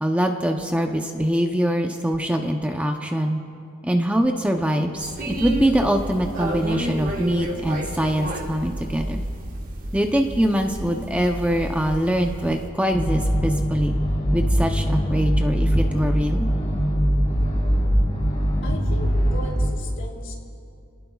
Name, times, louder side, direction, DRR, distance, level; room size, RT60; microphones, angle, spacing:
voice 1, 0.0-3.4 3.8-9.2 9.9-14.0 14.3-16.5, equal, 5° right, 3 dB, 0.6 m, -23 dB
sound 1, 5.0-12.7, right 1 dB, 40° right, 1.6 m, -31 dB
sound 2, 12.9-19.7, equal, 30° left, 3.3 m, -22 dB
voice 2, 18.6-20.3, equal, 65° left, -1 dB, 3.0 m, -37 dB
29.5 x 19.0 x 2.4 m, 2.5 s
head